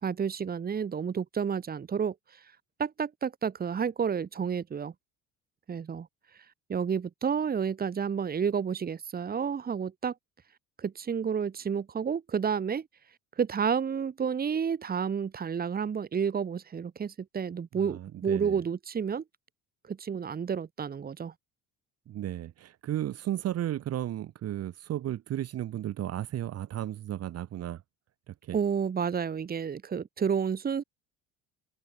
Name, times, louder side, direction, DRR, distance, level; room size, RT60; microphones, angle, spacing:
voice 1, 0.0-2.1 2.8-4.9 5.7-6.1 6.7-10.1 10.8-12.9 13.4-19.2 19.9-21.3 28.5-30.8, right 7 dB, 30° right, 2.0 m, -30 dB
voice 2, 17.7-18.6 22.1-27.8 28.3-28.6, right 12 dB, 50° right, 1.8 m, -34 dB
cardioid pair, 110°, 31 cm